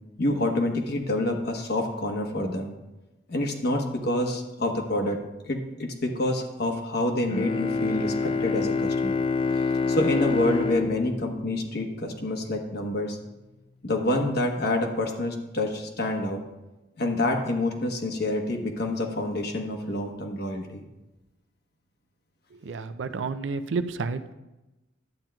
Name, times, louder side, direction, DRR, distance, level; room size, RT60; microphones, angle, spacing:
voice 1, 0.2-2.7 3.3-5.2 5.4-9.2 9.9-13.2 13.8-16.4 17.0-20.8, left 1 dB, 60° left, 2 dB, 1.1 m, -27 dB
Bowed string instrument, 7.3-12.2, left 4 dB, 30° left, 0.3 m, -27 dB
voice 2, 22.5-24.3, right 4 dB, 75° right, 11 dB, 0.5 m, -31 dB
12.0 x 8.8 x 2.3 m, 1.0 s
head